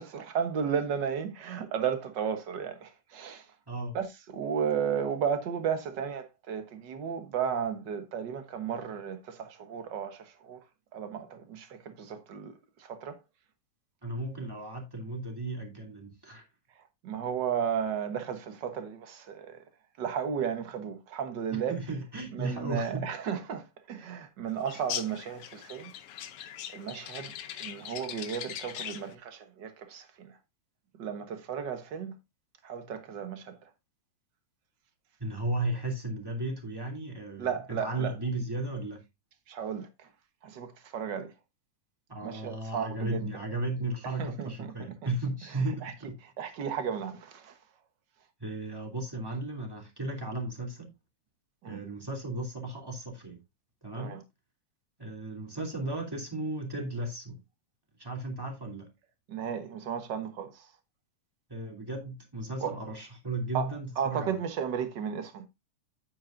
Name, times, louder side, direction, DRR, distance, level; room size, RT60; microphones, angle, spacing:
voice 1, 0.0-3.4 3.9-10.6 10.9-12.5 12.8-13.2 17.0-19.6 20.0-21.7 22.3-25.9 26.7-27.3 27.6-30.4 31.0-32.2 32.6-33.6 37.4-38.1 39.5-40.1 40.4-41.3 42.2-43.3 44.2-44.9 45.8-45.9 46.4-47.5 51.6-51.8 54.0-54.2 59.3-60.7 62.6-62.8 63.5-65.5, right 7 dB, 70° right, 1.0 m, -34 dB
voice 2, 3.7-4.0 14.0-16.4 21.5-23.1 35.2-39.0 42.1-46.2 48.4-50.9 51.6-53.4 53.8-54.2 55.0-57.4 58.0-58.9 61.5-64.4, right 2 dB, 5° right, 2.4 m, -35 dB
sound 1, 24.7-29.1, left 11 dB, 85° left, 1.2 m, -40 dB
9.5 x 9.0 x 2.6 m
omnidirectional pair, 3.7 m